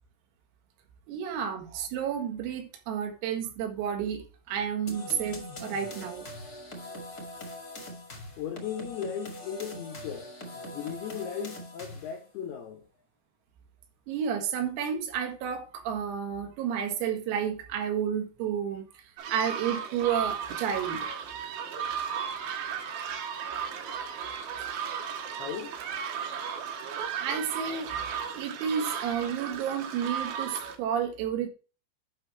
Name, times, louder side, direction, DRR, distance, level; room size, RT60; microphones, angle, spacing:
voice 1, 1.1-6.3 14.1-18.9 19.3-21.1 27.2-28.0 28.4-31.5, right 8 dB, 85° right, 4.5 m, -31 dB
sound 1, 4.9-12.2, left 1 dB, 50° left, 1.1 m, -42 dB
voice 2, 8.4-12.9 25.4-25.8, left 8 dB, 80° left, 2.3 m, -37 dB
sound 2, 19.2-30.8, right 7 dB, 70° right, 3.2 m, -35 dB
11.0 x 6.2 x 3.2 m
omnidirectional pair, 5.9 m